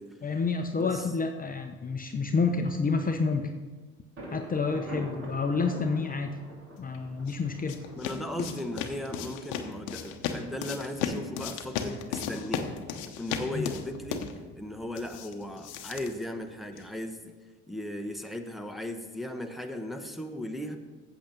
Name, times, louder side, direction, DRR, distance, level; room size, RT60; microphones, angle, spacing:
voice 1, 0.2-3.5 4.3-6.4 6.8-7.8 8.4-8.5 13.5-13.7, left 4 dB, 30° left, 5 dB, 0.8 m, -29 dB
voice 2, 0.7-1.1 8.0-12.7 13.2-14.2 14.6-17.3 17.7-20.8, left 1 dB, ahead, 4 dB, 1.0 m, -37 dB
Thunder, 4.2-9.8, right 1 dB, 45° right, 3.1 m, -44 dB
sound 1, 6.9-17.0, left 7 dB, 75° left, 1.0 m, -36 dB
8.5 x 7.6 x 5.3 m, 1.3 s
supercardioid pair, 75°, 31 cm